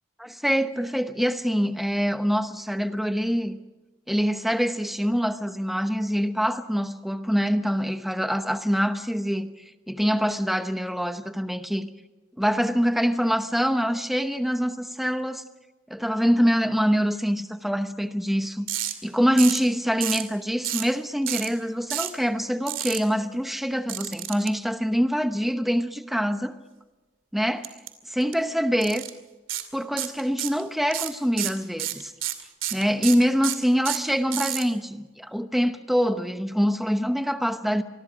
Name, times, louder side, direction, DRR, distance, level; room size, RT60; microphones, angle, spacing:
voice 1, 0.2-3.6 4.1-11.9 12.4-15.4 15.9-18.7 19.0-26.5 27.3-27.7 28.1-29.0 29.7-32.1 32.7-37.8, equal, ahead, 0.9 m, -25 dB
sound 1, 18.7-18.9 19.4-19.7 20.0-20.3 20.6-20.9 21.3-21.5 21.9-22.2 22.7-23.0 23.9-24.5 27.6-27.9 28.2-28.3 28.8-29.1 29.5-29.7 30.0-30.6 30.9-34.6, right 13 dB, 80° right, 2.5 m, -29 dB
27.0 x 21.0 x 5.1 m
head